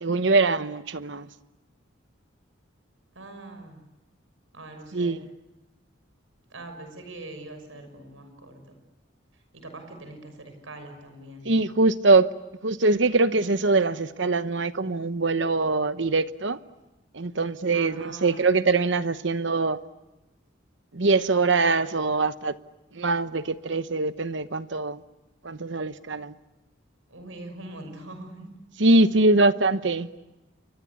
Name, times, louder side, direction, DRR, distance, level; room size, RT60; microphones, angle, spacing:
voice 1, 0.0-1.3 4.9-5.3 11.4-12.3 12.6-16.6 17.1-19.8 20.9-22.5 22.9-25.0 25.4-26.3 28.8-30.1, right 3 dB, 65° right, 1.0 m, -23 dB
voice 2, 3.1-3.8 4.5-5.2 6.5-8.6 9.3-11.5 17.7-18.5 27.1-28.5, right 2 dB, 80° right, 6.3 m, -42 dB
29.0 x 24.0 x 8.5 m
head